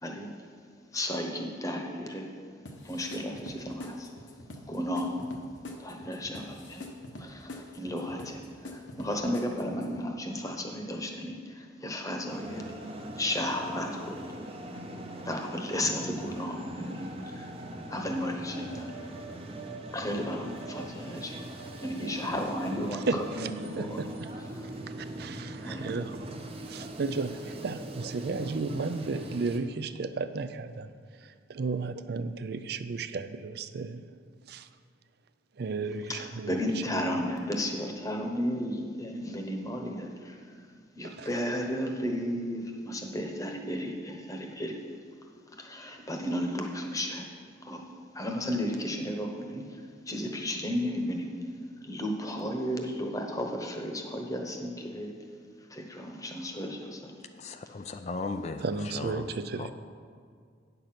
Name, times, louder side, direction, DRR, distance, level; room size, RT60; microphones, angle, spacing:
voice 1, 0.0-0.3 0.9-2.3 2.8-4.1 4.7-5.2 5.8-6.9 7.2-12.6 13.2-14.2 15.2-17.5 17.9-18.9 19.9-21.4 21.8-24.0 24.5-24.7 25.6-25.9 36.1-40.6 40.9-44.8 45.5-47.3 47.6-47.8 48.1-51.3 51.8-55.1 55.7-57.1, left 1 dB, 20° left, 2 dB, 1.0 m, -34 dB
sound 1, 2.7-10.0, left 2 dB, 75° left, 1.1 m, -45 dB
sound 2, 12.3-29.6, right 1 dB, 30° right, 0.8 m, -41 dB
voice 2, 22.9-24.3 24.6-24.7 25.0-26.3 26.7-34.0 34.5-34.7 35.6-37.0 41.0-41.3 58.6-59.7, right 4 dB, 60° right, 12 dB, 0.4 m, -34 dB
voice 3, 57.4-58.6 58.9-59.3 59.6-59.7, left 3 dB, 35° left, 7 dB, 0.4 m, -36 dB
9.3 x 6.8 x 5.8 m, 2.1 s
head